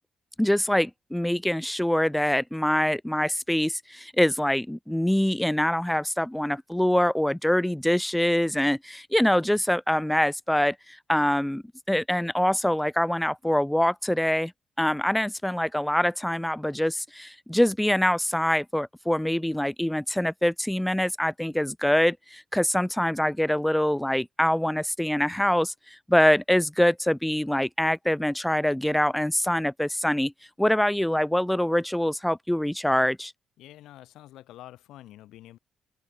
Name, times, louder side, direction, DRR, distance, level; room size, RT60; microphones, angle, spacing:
voice 1, 0.4-14.5 14.8-30.3 30.6-33.3, left 1 dB, 5° left, 0.5 m, -24 dB
voice 2, 33.6-35.6, left 14 dB, 85° left, 2.9 m, -47 dB
open air
cardioid pair, 90°, 0 cm